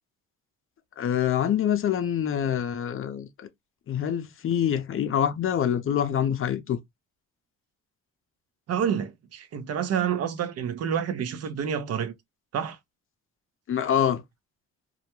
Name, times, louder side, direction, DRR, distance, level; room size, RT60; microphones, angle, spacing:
voice 1, 1.0-3.5 3.9-6.8 13.7-14.2, left 9 dB, 45° left, 0.5 m, -25 dB
voice 2, 8.7-12.1 12.5-12.8, right 8 dB, 55° right, 0.5 m, -28 dB
2.3 x 2.1 x 2.8 m
cardioid pair, 90°, 30 cm